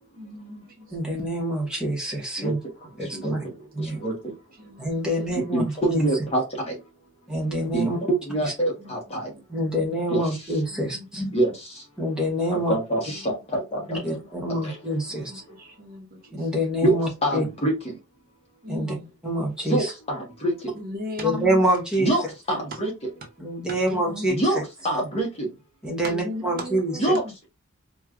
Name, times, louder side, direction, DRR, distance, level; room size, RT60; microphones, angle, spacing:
voice 1, 0.2-0.9 3.1-3.3 3.9-4.0 4.6-5.0 7.4-7.7 8.8-8.9 9.6-9.7 10.7-11.1 13.1-13.2 14.0-14.3 14.6-14.7 15.3-16.4 18.6-19.1 20.7-21.6 23.7-24.3 26.0-27.3, left 1 dB, 40° right, 0.8 m, -37 dB
voice 2, 0.9-2.6 3.0-3.4 3.7-4.0 4.8-5.6 5.9-6.0 7.3-8.0 8.4-8.5 9.5-11.3 12.0-12.7 13.9-15.3 16.3-17.4 18.7-19.0 19.2-19.9 21.2-22.2 23.4-24.6 25.8-27.1, equal, 5° right, 1.0 m, -26 dB
voice 3, 2.4-4.4 5.4-6.8 7.7-9.3 10.1-10.2 11.3-11.9 12.5-14.0 14.5-14.8 16.8-18.0 19.6-20.7 22.0-22.2 22.5-22.9 24.3-25.5 27.0-27.2, right 1 dB, 30° left, 1.1 m, -26 dB
4.4 x 2.3 x 2.4 m
head